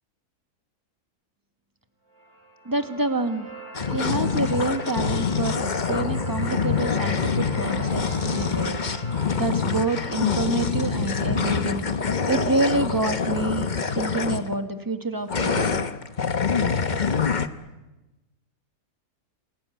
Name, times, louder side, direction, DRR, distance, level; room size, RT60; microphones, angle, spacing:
sound 1, 2.1-12.2, right 3 dB, 40° right, 7.8 m, -43 dB
voice 1, 2.6-3.5 3.9-8.8 9.4-11.8 12.3-13.7 13.9-15.9, right 2 dB, 15° right, 7 dB, 1.6 m, -27 dB
sound 2, 3.7-14.5 15.3-17.5, left 5 dB, 35° left, 1.0 m, -25 dB
28.0 x 18.0 x 9.2 m, 1.1 s
omnidirectional pair, 1.7 m